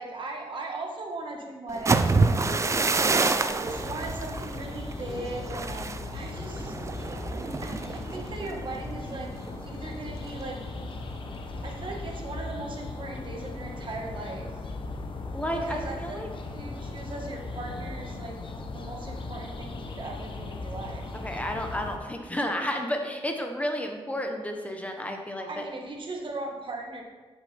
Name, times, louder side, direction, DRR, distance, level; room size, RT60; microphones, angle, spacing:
voice 1, 0.0-6.8 7.0-7.2 7.6-9.3 9.6-10.6 11.6-14.5 15.5-16.2 16.5-18.4 18.7-21.1 25.4-27.0, right 2 dB, 55° right, 1 dB, 1.5 m, -38 dB
sound 1, 1.7-9.5 9.9-10.2 10.6-11.0, right 3 dB, 30° right, 0.5 m, -28 dB
sound 2, 3.6-22.0, left 2 dB, 55° left, 0.9 m, -38 dB
voice 2, 15.3-16.3 21.2-25.6, equal, 15° left, 3 dB, 0.9 m, -31 dB
12.0 x 6.4 x 3.4 m, 1.4 s
cardioid pair, 100°, 10 cm